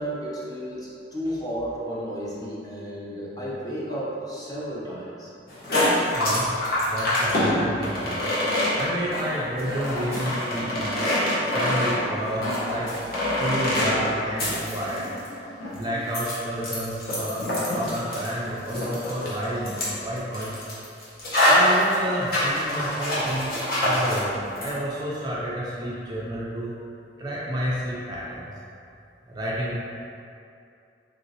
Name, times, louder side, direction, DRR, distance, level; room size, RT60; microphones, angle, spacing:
voice 1, 0.0-5.3, equal, 20° left, -7 dB, 0.6 m, -32 dB
sound 1, 5.5-24.3 24.6-24.7, left 1 dB, 55° left, 0.9 m, -25 dB
voice 2, 6.1-8.3 8.7-10.9 11.4-12.9 13.4-15.0 15.7-20.7 21.0-21.2 21.5-23.5 23.8-26.7 27.2-28.5 29.3-29.7, equal, 25° right, -6 dB, 0.3 m, -30 dB
3.1 x 2.7 x 2.7 m, 2.6 s
head